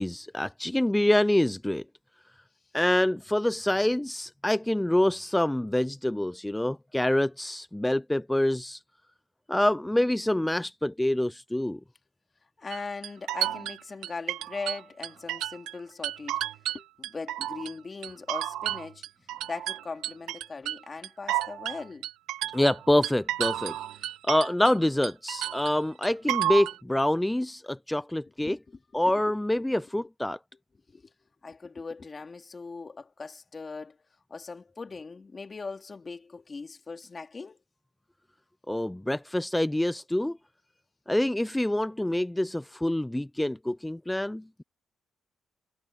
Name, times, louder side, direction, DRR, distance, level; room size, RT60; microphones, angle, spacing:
voice 1, 0.0-1.8 2.7-8.8 9.5-11.8 22.5-23.7 24.2-28.6 28.9-30.4 38.7-40.4 41.1-44.6, left 1 dB, 5° left, 0.4 m, -26 dB
voice 2, 12.6-16.4 16.7-19.0 19.5-22.1 28.4-28.8 29.1-29.4 29.9-30.1 30.9-31.1 31.4-34.0 34.3-37.6, left 4 dB, 30° left, 2.4 m, -40 dB
sound 1, 12.7-15.8 16.0-17.7 18.0-24.8 25.0-26.8, right 13 dB, 90° right, 1.4 m, -32 dB
cardioid pair, 90°, 0 cm